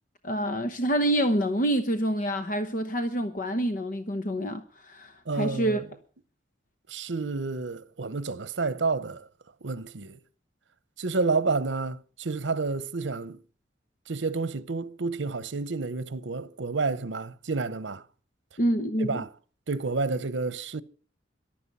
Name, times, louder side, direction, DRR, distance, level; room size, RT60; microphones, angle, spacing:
voice 1, 0.2-5.8 18.6-19.2, right 1 dB, 45° left, 1.0 m, -27 dB
voice 2, 5.3-5.8 6.9-9.3 9.6-10.2 11.0-13.4 14.1-18.0 19.0-19.3 19.7-20.8, right 3 dB, 85° right, 0.9 m, -30 dB
14.5 x 12.0 x 5.5 m
head